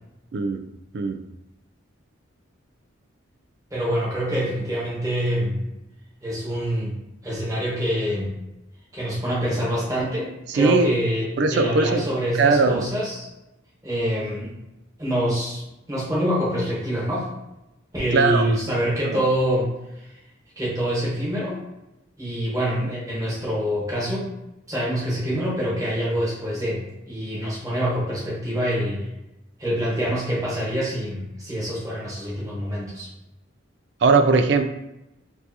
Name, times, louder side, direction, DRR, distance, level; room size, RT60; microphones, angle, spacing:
voice 1, 3.7-5.6 6.2-6.9 7.2-8.3 8.9-10.3 10.5-11.2 11.5-13.3 13.8-14.5 15.0-15.6 15.9-17.3 17.9-19.7 20.6-21.6 22.2-24.3 24.7-26.8 27.1-29.1 29.6-33.1, equal, 15° right, -7 dB, 1.2 m, -25 dB
voice 2, 10.5-10.9 11.4-12.1 12.4-12.8 18.1-18.5 19.0-19.2 34.0-34.7, right 4 dB, 55° right, 7 dB, 0.3 m, -19 dB
4.5 x 2.6 x 2.8 m, 0.92 s
head